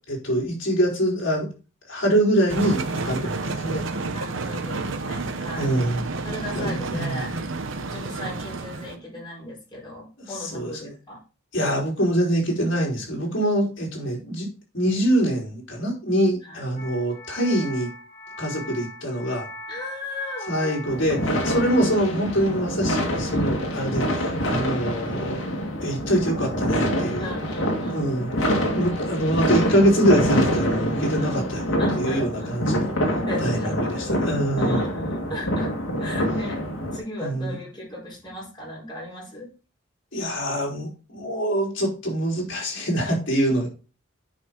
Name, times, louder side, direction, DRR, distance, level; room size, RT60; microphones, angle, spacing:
voice 1, 0.1-1.5 1.9-3.8 5.6-6.1 6.5-7.2 10.2-10.9 11.5-14.5 14.7-17.9 18.4-19.5 20.5-25.5 25.8-27.3 27.9-28.3 28.7-32.9 33.4-34.9 37.2-37.6 40.1-43.7, right 1 dB, 65° left, -2 dB, 4.2 m, -24 dB
sound 1, 2.5-9.0, right 3 dB, 75° right, 1.0 m, -30 dB
voice 2, 4.1-5.7 6.2-7.3 7.9-11.2 16.5-16.6 19.7-20.9 27.2-28.1 31.2-31.4 31.8-32.6 33.2-34.0 34.6-35.7 36.0-36.6 36.9-39.5, left 1 dB, 25° left, -4 dB, 4.5 m, -36 dB
sound 2, 16.8-22.0, left 1 dB, 45° left, 3.9 m, -40 dB
sound 3, 20.9-37.0, equal, 90° left, 2.0 m, -25 dB
9.7 x 5.5 x 3.8 m, 0.34 s
head